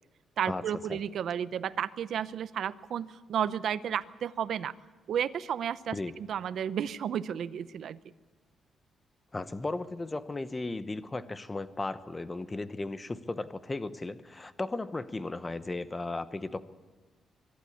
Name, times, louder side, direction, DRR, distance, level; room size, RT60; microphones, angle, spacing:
voice 1, 0.4-4.7 5.1-8.0, right 9 dB, 65° right, 16 dB, 0.7 m, -32 dB
voice 2, 9.3-16.6, left 2 dB, 20° left, 13 dB, 1.0 m, -35 dB
23.5 x 12.0 x 9.5 m, 1.4 s
cardioid pair, 115°, 0 cm